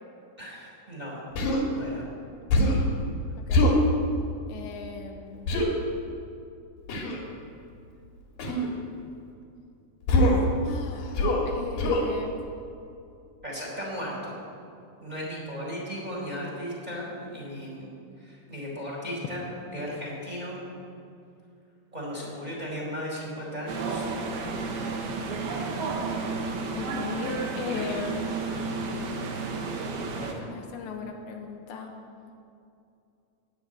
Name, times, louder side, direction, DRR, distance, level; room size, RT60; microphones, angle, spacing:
voice 1, 0.4-1.2 1.7-2.0 13.4-14.3 15.0-17.9 18.2-19.5 19.7-20.6 21.9-24.1, equal, 10° right, -4 dB, 4.3 m, -36 dB
Human voice, 1.4-1.6 2.5-2.9 3.5-3.8 5.5-5.7 6.9-7.2 8.4-8.7 10.1-10.5 11.1-11.5 11.8-12.1, left 1 dB, 55° left, 3.6 m, -22 dB
voice 2, 4.5-5.6 10.7-12.3 26.7-28.3 30.2-31.9, left 5 dB, 80° left, 3 dB, 3.3 m, -37 dB
sound 1, 23.7-30.3, right 3 dB, 65° right, 3.3 m, -32 dB
19.5 x 7.9 x 9.0 m, 2.5 s
omnidirectional pair, 5.1 m